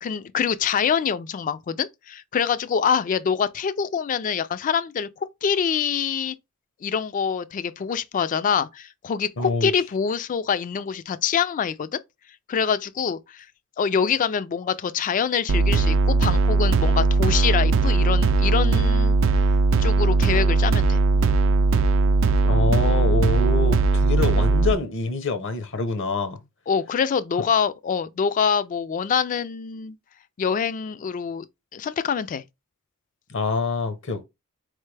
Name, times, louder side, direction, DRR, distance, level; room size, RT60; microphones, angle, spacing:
voice 1, 0.0-5.1 5.4-6.3 6.8-12.0 12.5-13.5 13.8-19.2 19.8-21.0 26.7-30.0 30.4-31.5 31.7-32.4, left 7 dB, 40° left, 0.3 m, -25 dB
voice 2, 9.4-9.7 22.4-26.4 33.3-34.2, left 3 dB, 60° left, 0.8 m, -26 dB
sound 1, 15.5-24.7, right 3 dB, 65° right, 0.4 m, -19 dB
4.0 x 3.3 x 3.2 m
head